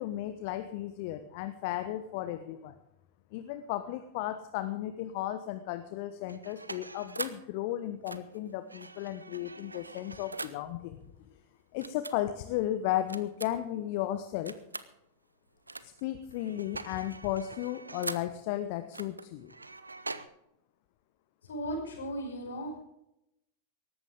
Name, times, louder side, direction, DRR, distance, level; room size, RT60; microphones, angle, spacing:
voice 1, 0.0-2.7 3.3-11.0 11.7-14.6 15.8-19.5, left 13 dB, 50° left, 10 dB, 1.0 m, -34 dB
sound 1, 6.2-7.5 8.0-10.7 11.8-12.2 13.1-13.7 14.5-14.9 15.7-16.1 16.3-18.4 18.9-20.3, right 3 dB, 80° right, 0.8 m, -42 dB
voice 2, 21.4-22.8, equal, 65° left, 3 dB, 5.1 m, -36 dB
18.5 x 14.5 x 3.7 m, 0.82 s
figure-of-eight pair, 90°, 0 cm